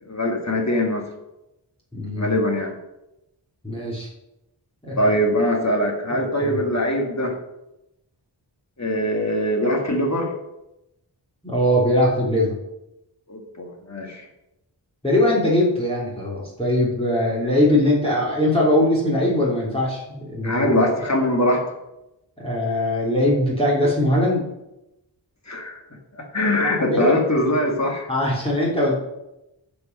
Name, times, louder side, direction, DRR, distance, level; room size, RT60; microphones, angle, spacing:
voice 1, 0.0-1.1 2.2-2.7 5.0-7.4 8.8-10.3 13.3-14.3 20.4-21.7 25.5-25.8 26.2-28.1, left 1 dB, 35° left, 1 dB, 2.2 m, -22 dB
voice 2, 1.9-2.4 3.6-4.1 4.8-5.1 6.4-6.6 11.4-12.5 15.0-20.6 22.4-24.4 26.6-27.1 28.1-29.0, left 1 dB, 10° left, -6 dB, 3.2 m, -21 dB
14.0 x 5.4 x 5.4 m, 0.91 s
wide cardioid pair, 40°, 45 cm